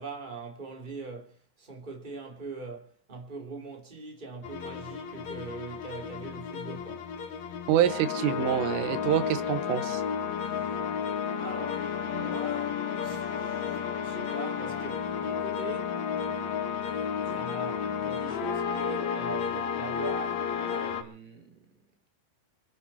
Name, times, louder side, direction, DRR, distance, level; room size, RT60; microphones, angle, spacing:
voice 1, 0.0-7.1 10.5-10.7 11.3-16.0 16.9-21.8, right 4 dB, 10° right, 2.6 m, -42 dB
sound 1, 4.4-21.0, left 7 dB, 70° left, 1.7 m, -32 dB
voice 2, 7.7-10.0, right 11 dB, 90° right, 3.8 m, -26 dB
26.0 x 11.0 x 4.3 m
omnidirectional pair, 5.6 m